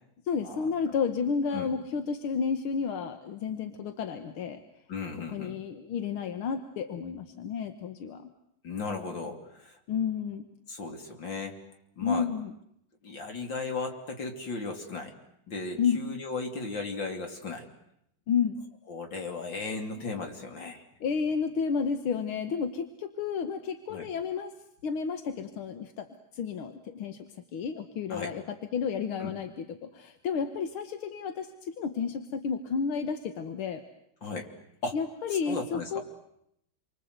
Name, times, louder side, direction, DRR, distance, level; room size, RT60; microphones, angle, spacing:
voice 1, 0.3-4.6 5.3-8.3 9.9-10.4 12.0-12.5 15.8-16.0 18.3-18.6 21.0-24.5 24.8-26.1 26.3-33.8 34.9-36.0, left 6 dB, 85° left, 8 dB, 2.1 m, -31 dB
voice 2, 4.9-5.6 8.6-9.8 10.7-11.6 12.0-12.3 13.0-15.1 15.5-17.7 18.9-20.8 23.9-24.1 28.1-28.3 29.2-29.3 34.2-34.5 34.8-35.0 35.5-36.0, left 3 dB, 65° left, 3 dB, 3.7 m, -36 dB
28.5 x 24.5 x 8.1 m, 0.77 s
omnidirectional pair, 2.3 m